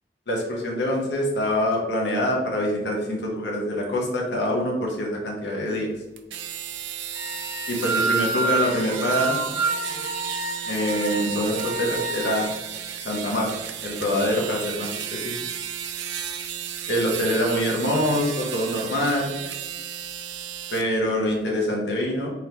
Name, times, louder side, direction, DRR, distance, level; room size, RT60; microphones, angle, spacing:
voice 1, 0.3-5.9 7.7-9.4 10.7-12.5 13.0-13.5 13.8-15.3 16.9-19.3 20.7-22.3, left 1 dB, 75° left, -2 dB, 0.8 m, -25 dB
sound 1, 6.2-20.9, right 9 dB, 90° right, 0.4 m, -34 dB
sound 2, 7.1-12.4, right 3 dB, 40° left, 0.9 m, -28 dB
3.8 x 3.3 x 2.8 m, 1.1 s
head